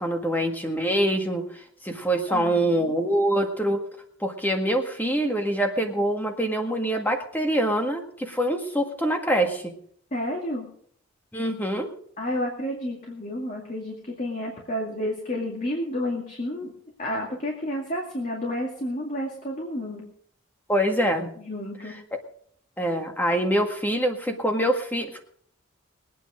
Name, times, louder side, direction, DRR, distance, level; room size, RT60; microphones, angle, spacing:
voice 1, 0.0-3.8 4.2-9.7 11.3-11.9 20.7-21.3 21.8-21.9 22.8-25.2, right 1 dB, 10° left, 4 dB, 1.7 m, -25 dB
voice 2, 2.3-2.9 10.1-10.7 12.2-16.7 17.0-20.0 21.4-22.0, left 1 dB, 35° left, -1 dB, 2.3 m, -31 dB
21.5 x 9.3 x 5.0 m, 0.62 s
head